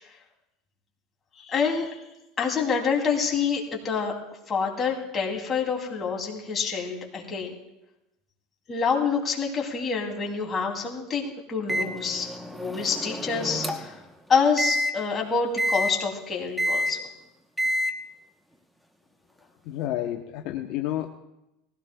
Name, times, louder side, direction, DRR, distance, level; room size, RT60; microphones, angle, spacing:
voice 1, 1.4-2.0 2.4-4.1 4.5-7.5 8.7-14.0 14.3-17.0, left 5 dB, 30° left, 0 dB, 2.7 m, -27 dB
Microwave oven, 11.7-14.0 14.6-14.9 15.6-15.9 16.6-16.9 17.6-17.9, equal, 5° right, 0.9 m, -28 dB
voice 2, 19.6-21.1, left 13 dB, 65° left, 3 dB, 0.8 m, -30 dB
19.5 x 16.0 x 2.3 m, 0.90 s
supercardioid pair, 120°, 0 cm